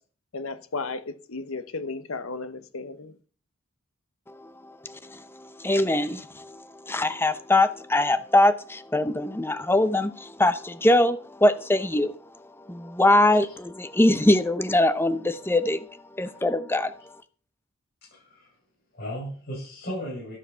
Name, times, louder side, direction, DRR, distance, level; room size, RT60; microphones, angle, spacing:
voice 1, 0.3-3.1, left 3 dB, 75° left, 1.0 m, -34 dB
voice 2, 4.8-12.1 12.7-15.9 16.2-16.9, left 1 dB, 10° left, 0.7 m, -22 dB
voice 3, 18.1-18.5 18.9-20.3, equal, 50° left, 7.1 m, -35 dB
12.5 x 7.1 x 5.6 m
head